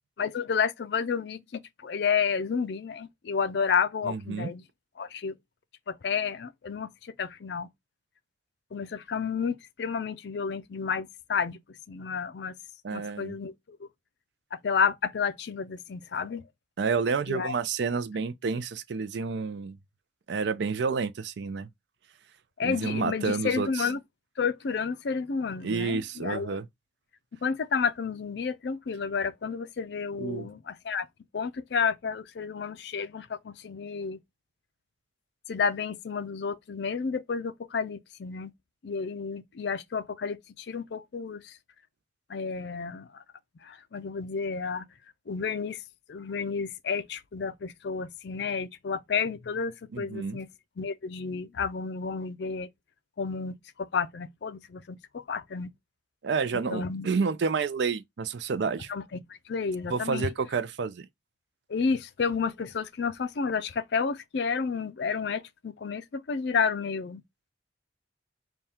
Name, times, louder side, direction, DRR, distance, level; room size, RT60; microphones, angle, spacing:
voice 1, 0.2-4.6 5.0-5.4 5.9-7.7 8.7-11.6 11.9-12.5 12.9-13.9 14.5-16.4 17.3-17.5 22.6-24.0 24.4-26.6 27.4-31.1 31.3-34.2 35.5-38.5 38.8-41.6 42.3-43.2 43.6-44.9 45.3-45.8 46.1-50.5 50.8-52.7 53.2-55.7 56.7-57.1 58.9-60.3 61.7-67.2, left 6 dB, 65° left, 0.4 m, -31 dB
voice 2, 4.0-4.5 12.8-13.4 16.8-19.8 20.3-21.7 22.6-23.9 25.6-26.6 30.2-30.5 49.9-50.4 56.2-58.9 59.9-61.1, right 5 dB, 70° right, 0.4 m, -29 dB
3.5 x 2.3 x 4.2 m
head